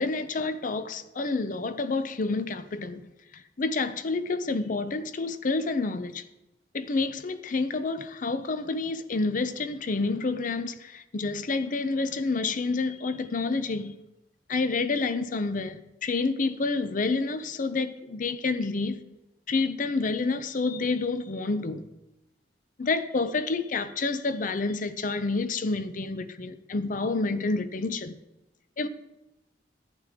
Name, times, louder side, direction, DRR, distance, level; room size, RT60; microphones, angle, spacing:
voice 1, 0.0-3.0 3.3-6.2 6.7-13.9 14.5-19.0 19.5-21.8 22.8-28.2 28.8-28.9, left 3 dB, 50° left, 0.6 m, -29 dB
11.0 x 9.9 x 3.6 m
head